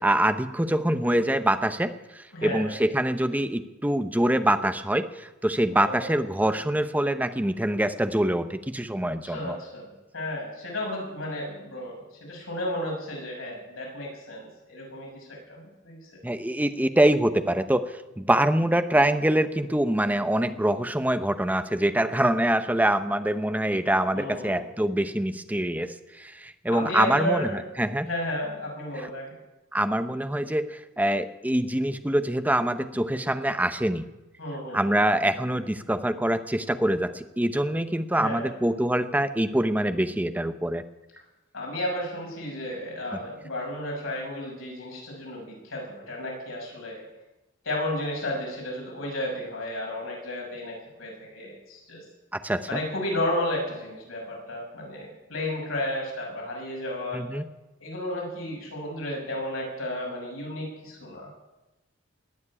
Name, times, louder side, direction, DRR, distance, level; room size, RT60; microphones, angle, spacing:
voice 1, 0.0-9.6 16.2-28.1 29.7-34.0 34.7-40.8 43.1-43.2 52.3-52.6 57.1-57.5, right 1 dB, 10° right, 9 dB, 0.7 m, -25 dB
voice 2, 2.3-2.8 5.7-6.2 9.0-16.2 24.1-24.6 26.7-27.6 28.0-29.3 34.4-34.9 38.1-38.6 41.5-47.0 47.6-52.0 52.7-57.2 57.8-61.3, left 1 dB, 85° left, -2 dB, 6.6 m, -33 dB
20.0 x 7.2 x 9.9 m, 1.0 s
head